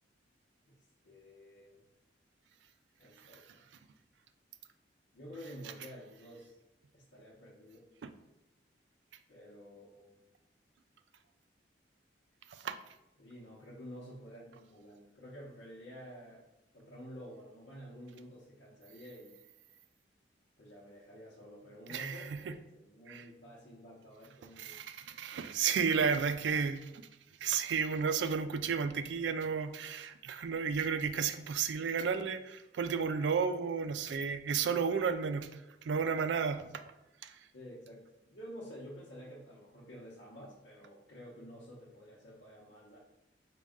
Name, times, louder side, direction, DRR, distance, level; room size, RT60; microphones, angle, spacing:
voice 1, 1.0-1.8 3.0-3.7 5.1-6.5 6.9-7.8 9.3-10.2 13.2-16.4 16.7-19.4 20.6-24.8 37.5-43.0, equal, 85° left, -6 dB, 0.8 m, -50 dB
voice 2, 21.9-22.5 23.1-23.2 24.6-27.0 27.4-35.5 35.8-36.6 37.2-37.3, right 6 dB, 75° right, 9 dB, 0.3 m, -32 dB
5.2 x 2.3 x 3.5 m, 0.91 s
head